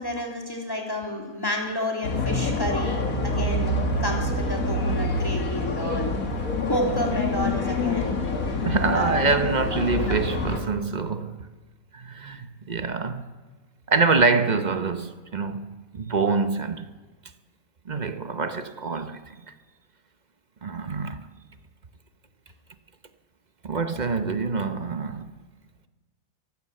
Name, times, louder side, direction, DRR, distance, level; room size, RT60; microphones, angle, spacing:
voice 1, 0.0-6.1 6.7-8.2 8.9-9.3 9.8-10.2, left 1 dB, 15° left, 3.4 m, -30 dB
sound 1, 2.0-10.6, left 2 dB, 70° left, 2.4 m, -26 dB
voice 2, 8.6-11.4 11.9-13.2 13.9-16.9 17.9-19.4 20.6-21.2 23.6-25.3, right 4 dB, 35° right, 0.9 m, -25 dB
22.0 x 15.5 x 7.6 m
omnidirectional pair, 1.5 m